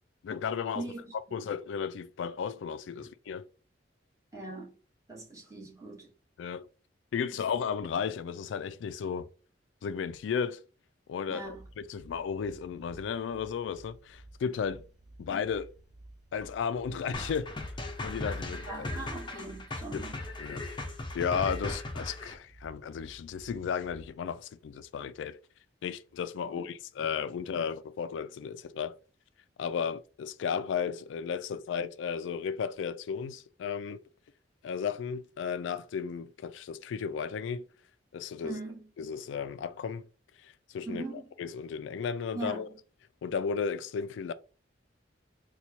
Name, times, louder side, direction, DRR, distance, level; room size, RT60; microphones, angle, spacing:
voice 1, 0.2-0.8 1.3-3.4 6.4-6.7 7.1-9.3 9.8-10.6 11.1-14.8 15.2-15.7 16.3-17.5 18.0-18.9 19.9-20.0 20.4-20.6 21.1-25.4 25.8-28.9 29.6-34.0 34.6-37.7 38.1-38.6 39.0-40.1 40.4-41.0 41.4-42.7 43.2-44.3, left 6 dB, 85° left, 0.3 m, -34 dB
voice 2, 0.7-1.5 4.3-4.7 5.1-6.1 11.3-11.6 18.7-20.2 26.5-26.7 38.4-38.9 40.9-41.3 42.3-42.6, right 2 dB, 15° right, 1.2 m, -40 dB
sound 1, 11.4-24.2, right 1 dB, 55° right, 1.0 m, -54 dB
sound 2, 17.1-22.3, left 2 dB, 25° left, 0.5 m, -37 dB
4.3 x 2.2 x 2.8 m
head